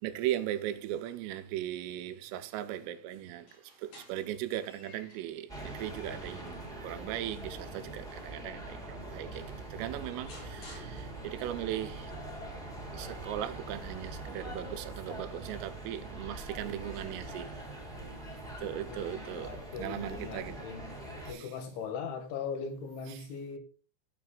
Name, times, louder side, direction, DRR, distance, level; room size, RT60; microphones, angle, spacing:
voice 1, 0.0-12.1 12.9-17.6 18.6-20.7 21.3-21.5 23.1-23.2, right 12 dB, 90° right, 3.6 m, -38 dB
sound 1, 3.3-5.4 5.9-8.5 9.0-9.1 9.3-11.5, left 2 dB, 50° left, 7.2 m, -56 dB
sound 2, 5.5-21.3, right 2 dB, ahead, 3.1 m, -43 dB
voice 2, 18.6-21.0 21.3-23.6, left 6 dB, 70° left, 4.1 m, -40 dB
18.0 x 7.0 x 2.4 m
omnidirectional pair, 5.7 m